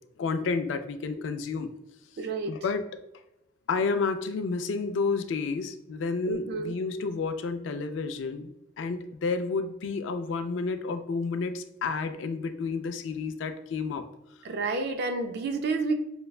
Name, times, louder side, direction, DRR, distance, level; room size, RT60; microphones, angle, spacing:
voice 1, 0.2-1.7 2.5-2.9 3.7-14.1, left 4 dB, 75° left, 9 dB, 0.3 m, -30 dB
voice 2, 2.2-2.5 6.3-6.7 14.4-15.9, right 3 dB, 60° right, 7 dB, 0.4 m, -30 dB
5.2 x 2.1 x 2.3 m, 0.85 s
head